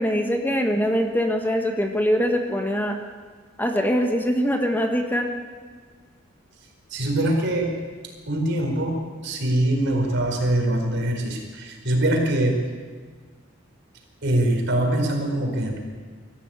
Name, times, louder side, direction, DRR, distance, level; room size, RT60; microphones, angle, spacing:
voice 1, 0.0-3.0 3.6-5.3, equal, 10° left, 4 dB, 1.3 m, -23 dB
voice 2, 6.9-7.7 8.3-12.7 14.2-15.8, right 1 dB, 60° right, 2 dB, 4.6 m, -23 dB
22.0 x 14.5 x 8.9 m, 1.5 s
head